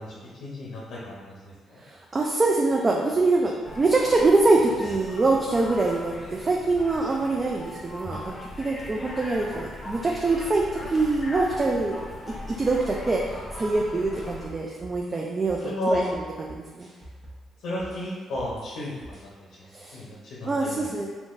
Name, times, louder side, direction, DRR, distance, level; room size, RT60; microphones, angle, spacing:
voice 1, 0.0-1.8 15.6-16.1 17.6-18.9 19.6-19.7 19.9-20.9, left 1 dB, 80° left, -5 dB, 0.7 m, -32 dB
voice 2, 1.8-12.0 12.5-16.0 16.4-16.5 16.7-16.9 19.7-20.0 20.4-21.1, right 3 dB, 30° right, -1 dB, 0.3 m, -24 dB
sound 1, 3.6-14.5, left 1 dB, 30° left, 0.6 m, -39 dB
sound 2, 14.1-17.5 17.8-19.2, right 1 dB, 45° right, 1.0 m, -46 dB
3.7 x 2.3 x 2.5 m, 1.4 s
cardioid pair, 90°, 0 cm